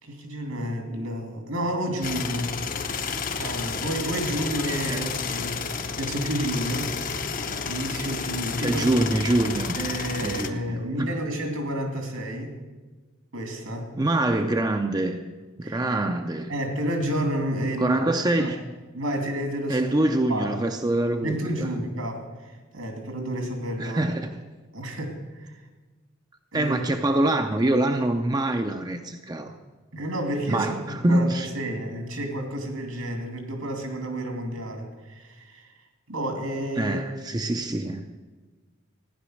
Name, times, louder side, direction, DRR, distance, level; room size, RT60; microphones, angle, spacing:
voice 1, 0.0-2.6 3.4-6.9 7.6-8.9 9.7-12.6 13.3-13.9 15.6-15.8 16.5-18.0 18.4-18.5 18.9-19.8 20.3-20.5 21.2-24.1 24.7-25.5 26.5-26.9 29.9-35.7 36.1-37.0, right 1 dB, 80° right, 3 dB, 2.8 m, -30 dB
sound 1, 2.0-10.5, left 5 dB, 40° left, 0.7 m, -31 dB
voice 2, 8.6-9.8 10.2-11.2 14.0-15.2 15.6-16.5 17.8-18.6 19.7-21.7 23.8-24.4 26.5-29.6 30.5-31.5 36.8-38.1, right 1 dB, 20° right, 6 dB, 0.5 m, -25 dB
14.5 x 10.5 x 6.4 m, 1.3 s
head